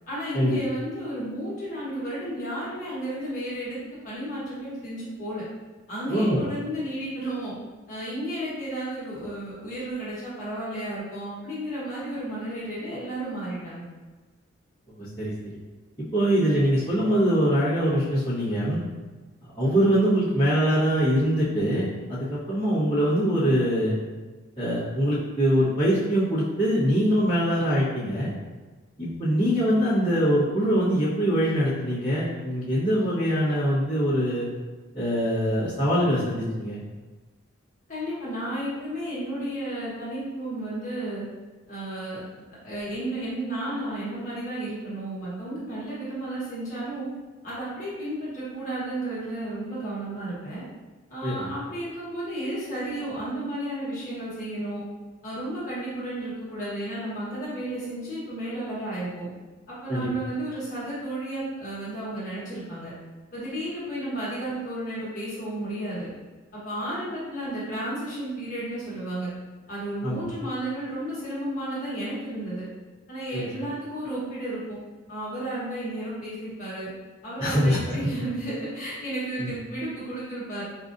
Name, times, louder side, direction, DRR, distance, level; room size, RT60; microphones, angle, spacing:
voice 1, 0.1-3.8 4.0-5.4 5.9-7.5 7.9-13.8 37.9-41.2 41.7-42.2 42.6-47.1 47.4-50.6 51.1-54.8 55.2-59.3 59.7-62.9 63.3-66.1 66.5-69.3 69.7-72.6 73.1-74.8 75.1-76.9 77.2-80.6, right 1 dB, 35° left, -10 dB, 1.3 m, -33 dB
voice 2, 6.1-6.4 15.0-15.3 16.0-18.8 19.5-23.9 24.6-28.3 29.0-34.4 34.9-36.8 51.2-51.5 59.9-60.1 70.0-70.2 73.3-73.4 77.4-77.8 79.4-79.5, equal, 20° left, -16 dB, 1.2 m, -23 dB
4.8 x 2.5 x 2.6 m, 1.3 s
head